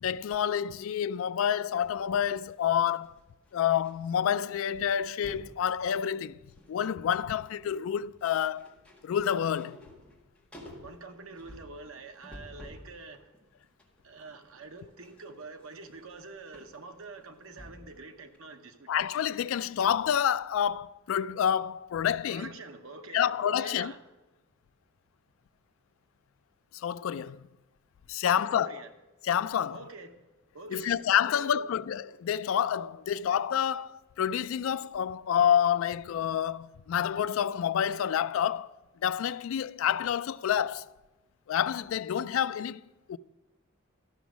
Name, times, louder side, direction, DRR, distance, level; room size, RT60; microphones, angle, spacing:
voice 1, 0.0-3.1 3.5-6.4 6.7-8.7 9.0-9.8 18.9-22.5 23.1-23.9 26.7-27.4 28.1-28.8 29.2-29.8 30.7-38.7 39.0-40.9 41.5-42.8 43.1-43.2, left 9 dB, 70° left, 0.3 m, -28 dB
sound 1, 1.8-3.9 4.2-4.5 4.7-5.6 6.1-6.8 7.1-12.9 13.3-18.0 18.3-18.4, left 1 dB, 5° left, 1.8 m, -52 dB
voice 2, 10.8-13.3 14.0-18.9 22.3-24.0 28.3-28.9 29.7-30.2 30.5-31.0 31.3-31.8, right 3 dB, 85° right, 1.0 m, -46 dB
13.0 x 6.1 x 6.1 m
head